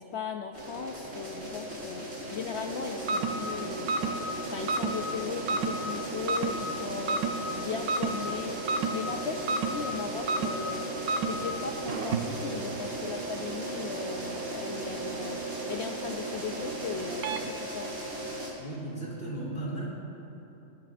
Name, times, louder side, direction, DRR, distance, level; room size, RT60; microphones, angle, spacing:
voice 1, 0.0-8.6 8.9-18.0, left 7 dB, 65° left, 4 dB, 0.7 m, -38 dB
sound 1, 0.5-18.5, right 1 dB, 60° right, 3.1 m, -38 dB
sound 2, 2.7-17.5, right 3 dB, 85° right, 1.2 m, -33 dB
voice 2, 18.6-19.9, right 2 dB, 40° left, -6 dB, 3.1 m, -35 dB
20.0 x 15.0 x 2.5 m, 2.9 s
omnidirectional pair, 1.5 m